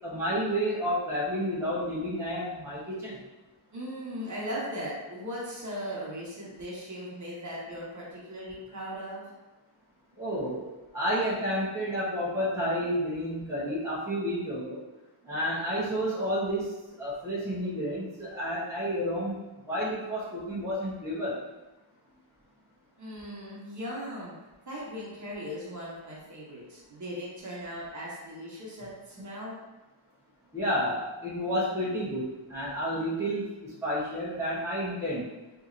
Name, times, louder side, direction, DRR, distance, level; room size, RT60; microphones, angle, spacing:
voice 1, 0.0-3.2 10.2-14.8 15.2-19.4 19.7-21.4 30.5-35.3, equal, 5° right, -9 dB, 0.8 m, -30 dB
voice 2, 3.7-9.2 23.0-24.3 24.7-29.6, equal, 35° right, -6 dB, 1.1 m, -38 dB
4.1 x 2.7 x 2.5 m, 1.1 s
wide cardioid pair, 140°, 49 cm